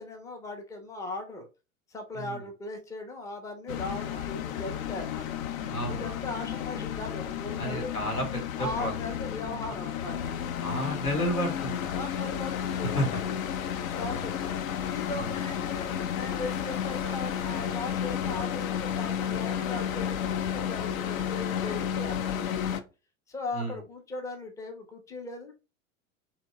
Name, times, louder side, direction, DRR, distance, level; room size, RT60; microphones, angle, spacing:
voice 1, 0.0-1.5 1.9-5.4 5.9-7.9 8.6-10.3 10.8-11.0 11.9-13.4 13.9-14.5 14.8-22.8 23.3-25.5, left 2 dB, 10° left, 4 dB, 0.4 m, -39 dB
sound 1, 3.7-22.8, left 9 dB, 70° left, 0.5 m, -32 dB
voice 2, 5.7-6.2 7.6-8.9 10.6-12.1 12.9-13.2 14.0-14.3 15.2-15.4 23.5-23.8, equal, 85° left, 3 dB, 0.9 m, -32 dB
sound 2, 14.8-20.3, left 4 dB, 30° left, 0.8 m, -52 dB
2.8 x 2.1 x 2.9 m, 0.29 s
figure-of-eight pair, 85°, 43 cm